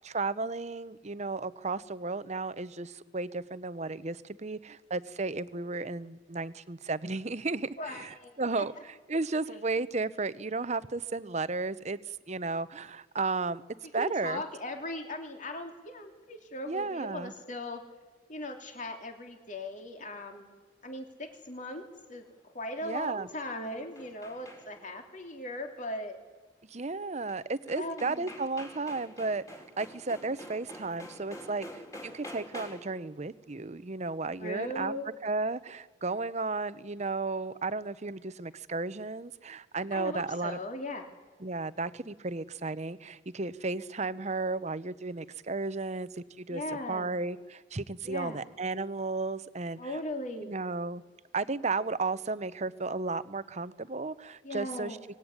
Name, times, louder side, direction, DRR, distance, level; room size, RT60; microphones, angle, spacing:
voice 1, 0.0-8.7 9.1-12.0 12.3-13.6 13.9-14.4 16.7-17.3 22.8-23.3 26.7-34.9 35.2-40.6 41.4-46.1 46.4-46.6 46.9-49.8 50.4-51.0 51.3-55.0, right 3 dB, 40° right, 14 dB, 0.9 m, -34 dB
voice 2, 7.8-8.7 9.5-9.6 13.9-17.8 18.3-20.5 20.8-21.8 22.1-26.2 27.7-28.3 34.4-35.1 39.9-41.1 46.5-47.2 48.0-48.4 49.8-50.6 54.4-55.0, left 1 dB, 45° left, 4 dB, 3.0 m, -39 dB
sound 1, 23.2-24.9 27.3-27.4 27.7-33.0, left 1 dB, 20° left, 3.7 m, -47 dB
24.5 x 19.5 x 9.8 m, 1.4 s
head